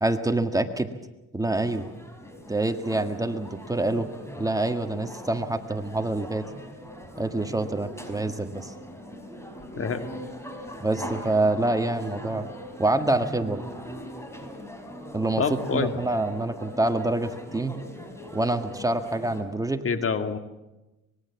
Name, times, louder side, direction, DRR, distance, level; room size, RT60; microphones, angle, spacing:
voice 1, 0.0-0.9 1.3-1.9 2.5-4.1 4.4-6.5 7.2-8.7 10.8-12.5 12.8-13.6 15.1-17.7 18.3-19.8, right 2 dB, 10° right, 7 dB, 1.8 m, -26 dB
sound 1, 1.5-19.4, equal, 10° left, 5.1 m, -41 dB
voice 2, 15.4-15.9 19.8-20.4, left 5 dB, 45° left, 8 dB, 2.2 m, -26 dB
25.0 x 21.5 x 7.2 m, 1.0 s
cardioid pair, 90°, 30 cm